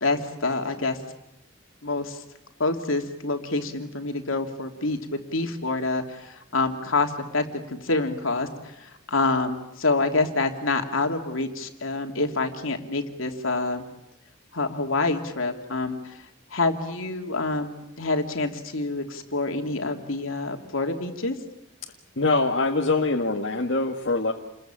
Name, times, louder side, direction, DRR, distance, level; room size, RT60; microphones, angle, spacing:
voice 1, 0.0-1.0 1.8-2.2 2.6-13.8 14.5-16.2 16.5-21.4, left 3 dB, 80° left, 5 dB, 2.8 m, -27 dB
voice 2, 22.2-24.3, left 3 dB, 65° left, 0 dB, 1.7 m, -23 dB
29.0 x 21.5 x 9.0 m, 0.84 s
head